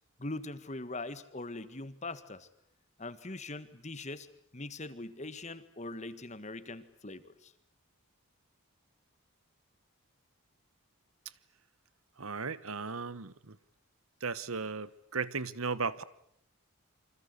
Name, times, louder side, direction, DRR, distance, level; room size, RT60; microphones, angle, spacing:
voice 1, 0.2-2.5 3.0-4.3 4.5-7.5, left 2 dB, 30° left, 1.6 m, -42 dB
voice 2, 12.2-13.6 14.2-16.0, right 4 dB, 80° right, 1.2 m, -36 dB
28.5 x 25.5 x 8.3 m
head